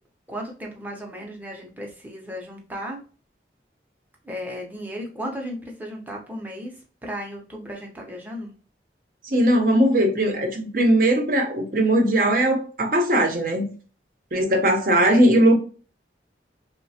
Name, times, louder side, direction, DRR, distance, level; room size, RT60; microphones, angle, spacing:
voice 1, 0.3-3.0 4.2-6.7 7.0-8.5 15.1-15.4, equal, 10° right, 0.6 m, -35 dB
voice 2, 9.3-13.6 14.3-15.6, right 1 dB, 50° right, 0.7 m, -19 dB
3.1 x 2.1 x 2.7 m
head